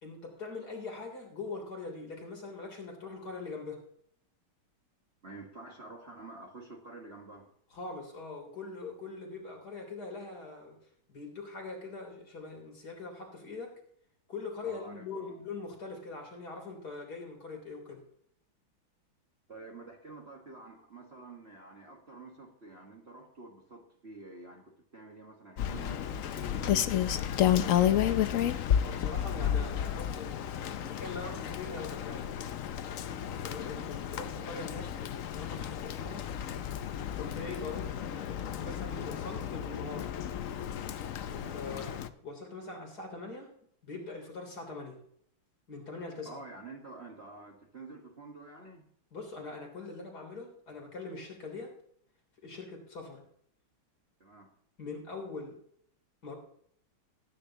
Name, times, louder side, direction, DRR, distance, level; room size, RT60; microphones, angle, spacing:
voice 1, 0.0-3.8 7.7-10.8 11.1-13.7 14.3-18.0 28.8-32.3 33.4-36.3 37.2-40.2 41.2-41.9 42.2-43.5 43.8-45.0 45.7-46.4 49.1-51.7 52.4-53.2 54.8-55.5 56.2-56.4, left 3 dB, 50° left, 2 dB, 4.0 m, -42 dB
voice 2, 5.2-7.5 14.6-15.4 19.5-27.9 41.6-41.9 46.3-48.8 54.2-54.5, right 3 dB, 35° right, -1 dB, 1.7 m, -49 dB
Rain, 25.6-42.1, left 10 dB, 80° left, 0.7 m, -32 dB
19.0 x 10.0 x 3.0 m, 0.65 s
omnidirectional pair, 2.2 m